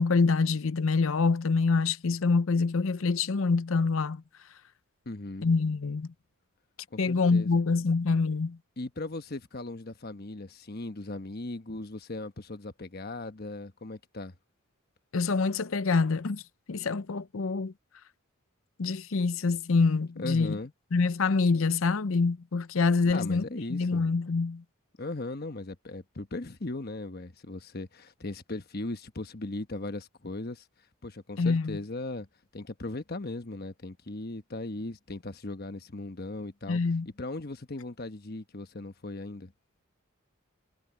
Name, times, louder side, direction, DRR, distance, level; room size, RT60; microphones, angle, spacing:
voice 1, 0.0-4.2 5.4-6.1 7.0-8.6 15.1-16.4 16.7-17.7 18.8-20.6 20.9-23.4 23.7-24.6 31.4-31.8 36.7-37.1, left 4 dB, 70° left, 0.6 m, -26 dB
voice 2, 5.0-5.5 6.9-7.5 8.8-14.3 20.2-20.7 23.1-24.0 25.0-30.6 31.0-32.3 32.5-39.5, left 2 dB, 45° left, 1.2 m, -38 dB
head